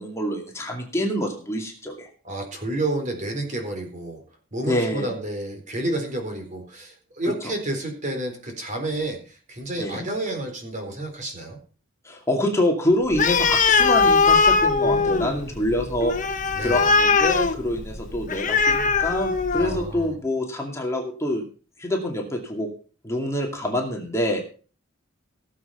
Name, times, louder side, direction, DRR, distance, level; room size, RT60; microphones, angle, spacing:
voice 1, 0.0-2.1 4.6-5.1 7.4-7.5 9.8-10.0 12.0-16.1 16.6-21.4 21.8-22.7 23.0-24.5, left 1 dB, 15° left, 1 dB, 2.4 m, -26 dB
voice 2, 2.2-4.2 4.5-11.6 14.8-15.4 16.5-16.9 19.5-20.1, right 1 dB, 40° right, 4 dB, 4.2 m, -30 dB
Animal, 13.1-19.9, left 4 dB, 40° left, 1.2 m, -20 dB
17.5 x 7.5 x 5.9 m, 0.39 s
head